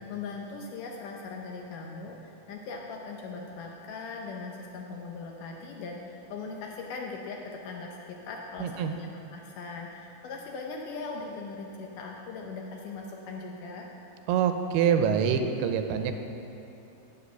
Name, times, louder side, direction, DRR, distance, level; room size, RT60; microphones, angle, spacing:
voice 1, 0.0-13.9, left 4 dB, 80° left, 0 dB, 1.9 m, -40 dB
voice 2, 8.6-8.9 14.3-16.1, right 7 dB, 85° right, 7 dB, 2.6 m, -25 dB
8.2 x 7.6 x 6.7 m, 2.8 s
omnidirectional pair, 4.5 m